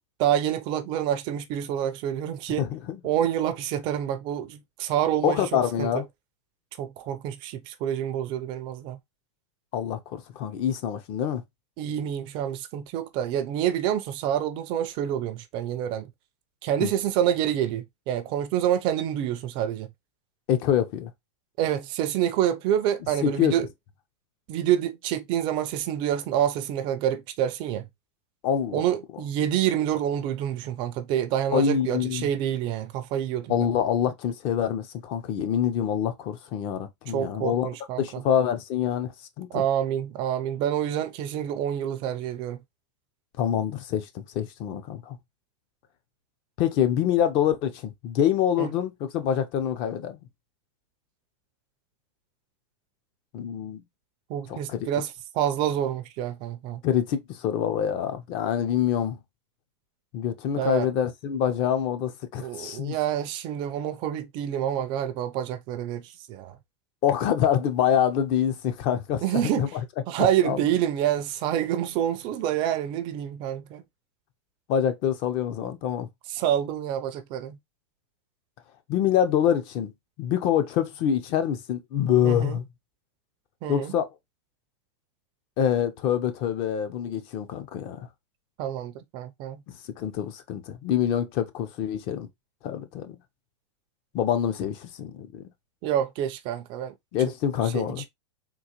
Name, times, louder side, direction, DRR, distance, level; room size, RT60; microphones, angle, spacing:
voice 1, 0.2-2.7 3.0-5.9 6.8-9.0 11.8-16.1 16.6-19.9 21.6-23.7 24.5-27.9 28.7-33.7 37.1-38.2 39.5-42.6 48.6-48.7 54.3-56.8 60.6-60.9 62.4-66.6 69.2-69.7 70.1-73.8 76.3-77.6 82.2-82.6 83.6-83.9 88.6-89.6 95.8-96.9 97.6-98.1, right 10 dB, 30° right, 0.4 m, -27 dB
voice 2, 2.6-3.0 5.2-6.0 9.7-11.4 16.8-16.9 20.5-21.1 23.2-23.5 28.4-28.8 31.5-32.3 33.5-37.7 38.0-39.1 39.4-39.6 43.4-45.2 46.6-50.2 53.3-53.8 54.5-54.9 56.8-59.2 60.1-62.9 67.0-69.7 70.4-70.6 74.7-76.1 78.9-79.9 80.2-82.6 83.7-84.1 85.6-88.1 90.0-92.3 92.6-93.2 94.1-95.4 97.1-98.0, left 9 dB, 35° left, 0.5 m, -26 dB
3.7 x 2.5 x 2.8 m
supercardioid pair, 150°, 15 cm